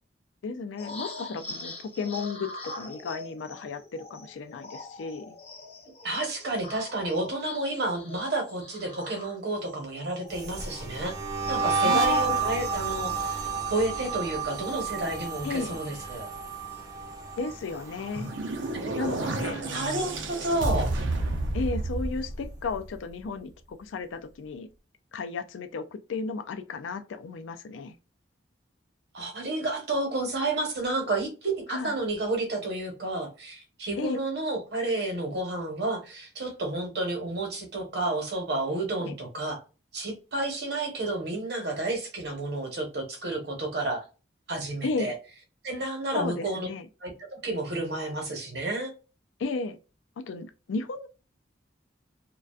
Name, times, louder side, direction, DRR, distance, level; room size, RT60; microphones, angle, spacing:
voice 1, 0.4-5.4 11.8-12.4 15.4-15.8 17.4-18.3 19.0-19.6 21.5-24.7 25.1-28.0 31.7-31.9 34.0-34.2 39.0-39.2 44.8-45.2 46.1-46.9 49.4-49.8 50.2-51.1, left 4 dB, 90° left, 0.4 m, -34 dB
sound 1, 0.8-11.1 11.4-16.3 16.6-16.8 17.1-18.3 18.7-19.1, left 2 dB, 35° left, 0.5 m, -44 dB
voice 2, 6.0-11.1 11.5-16.3 18.7-20.9 29.1-39.6 39.9-44.0 44.5-45.1 45.6-46.7 47.0-48.9, right 2 dB, 60° right, 0.9 m, -31 dB
sound 2, 10.3-19.5 19.8-20.2 20.5-22.1, right 5 dB, 20° right, 0.4 m, -31 dB
sound 3, 17.8-23.1, right 2 dB, 80° right, 0.5 m, -31 dB
2.4 x 2.2 x 2.3 m
head